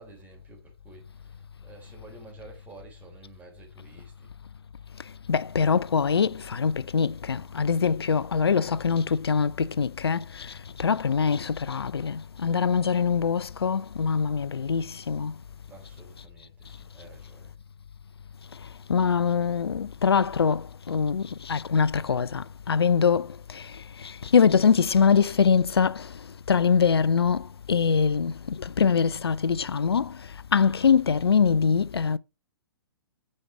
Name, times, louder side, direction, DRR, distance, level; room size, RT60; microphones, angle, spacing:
voice 1, 0.0-4.3 15.7-17.5, right 3 dB, 10° right, 3.7 m, -51 dB
voice 2, 5.3-15.3 18.9-23.7 24.0-26.1 26.5-30.2 30.5-32.2, left 6 dB, 80° left, 0.4 m, -23 dB
9.7 x 5.4 x 4.5 m
figure-of-eight pair, 120°, 13 cm